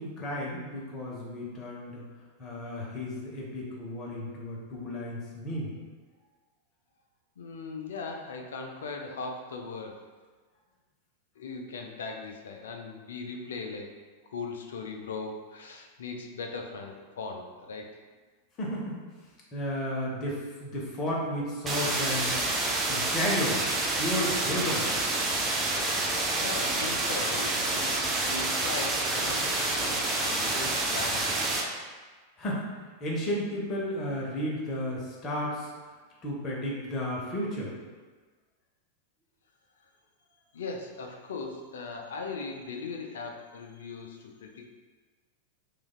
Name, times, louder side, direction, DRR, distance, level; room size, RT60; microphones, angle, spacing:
voice 1, 0.0-2.0 2.4-5.7 18.6-19.0 19.5-23.6 24.0-24.9 32.4-35.7 36.2-37.7, equal, 30° left, -4 dB, 0.7 m, -33 dB
voice 2, 7.4-10.0 11.4-13.9 14.3-17.9 26.4-28.0 28.2-31.4 40.5-44.7, left 4 dB, 65° left, 2 dB, 0.3 m, -39 dB
sound 1, 21.7-31.6, right 2 dB, 20° right, 0.4 m, -28 dB
3.1 x 2.3 x 2.2 m, 1.4 s
figure-of-eight pair, 90°, 0 cm